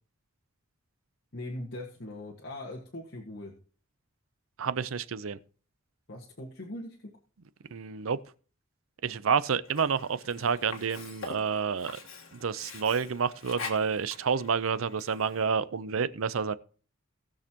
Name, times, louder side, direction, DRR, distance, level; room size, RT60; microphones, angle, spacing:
voice 1, 1.3-3.5 6.1-7.1, left 1 dB, 55° left, 1.6 m, -40 dB
voice 2, 4.6-5.4 7.7-8.2 9.0-12.0 12.3-16.5, right 6 dB, 90° right, 0.6 m, -29 dB
Sink (filling or washing), 9.6-15.6, left 4 dB, 85° left, 1.6 m, -45 dB
19.0 x 6.4 x 2.9 m
head